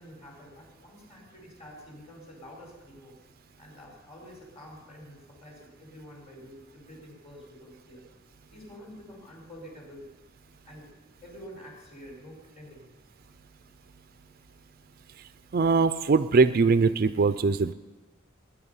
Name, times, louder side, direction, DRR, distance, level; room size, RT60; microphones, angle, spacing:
voice 1, 0.0-3.2 3.6-8.0 8.5-10.1 10.6-10.9 11.2-12.9, equal, 30° left, 0 dB, 4.6 m, -48 dB
voice 2, 15.5-17.7, right 4 dB, 45° right, 12 dB, 0.4 m, -21 dB
20.0 x 10.0 x 5.6 m, 1.2 s
head